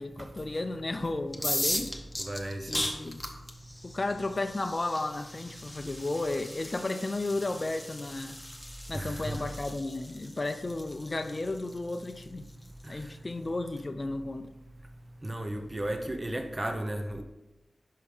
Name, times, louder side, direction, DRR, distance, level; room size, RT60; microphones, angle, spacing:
voice 1, 0.0-1.9 2.7-3.3 3.8-8.4 8.9-12.4 12.9-14.5, left 2 dB, 35° left, 0.5 m, -33 dB
sound 1, 1.3-13.0, left 1 dB, 10° left, 0.9 m, -38 dB
voice 2, 2.2-2.8 8.9-9.4 15.2-17.2, right 1 dB, 25° right, 0.6 m, -34 dB
5.6 x 5.2 x 4.9 m
wide cardioid pair, 75°, 0 cm